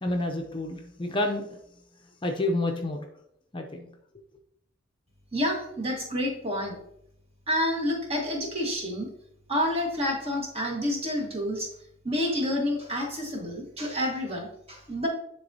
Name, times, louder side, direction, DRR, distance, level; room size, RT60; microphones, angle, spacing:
voice 1, 0.0-1.5 2.2-3.0 3.5-3.9, left 1 dB, 25° left, 3 dB, 0.6 m, -29 dB
voice 2, 5.3-6.7 7.5-9.1 9.5-11.7 12.0-15.1, left 1 dB, 30° right, 0 dB, 1.5 m, -29 dB
10.0 x 3.6 x 2.7 m, 0.73 s
head